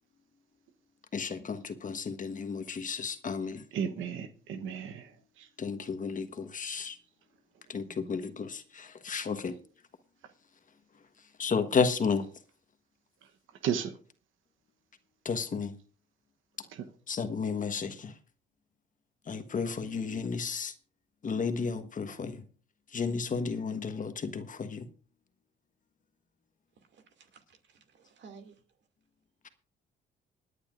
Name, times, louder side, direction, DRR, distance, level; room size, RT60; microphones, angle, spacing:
voice 1, 1.1-3.6 5.6-7.0 7.7-9.6 11.2-12.3 15.2-15.8 17.1-18.2 19.2-20.7 21.2-22.4 22.9-24.9, left 5 dB, 40° left, 1.3 m, -32 dB
voice 2, 3.7-5.5 13.6-13.9, right 8 dB, 85° right, 1.0 m, -34 dB
voice 3, 26.8-28.6, right 5 dB, 65° right, 2.4 m, -55 dB
26.5 x 9.8 x 2.5 m
cardioid pair, 90°, 20 cm